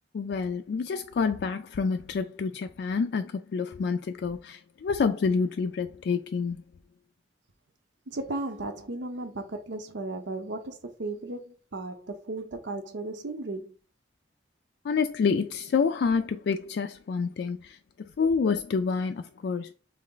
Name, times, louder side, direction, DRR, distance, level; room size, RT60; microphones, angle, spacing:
voice 1, 0.1-6.6 14.8-17.8 18.2-19.7, left 5 dB, 65° left, 0.3 m, -28 dB
voice 2, 8.1-13.7, right 2 dB, 90° right, 0.8 m, -35 dB
4.0 x 3.2 x 3.8 m
head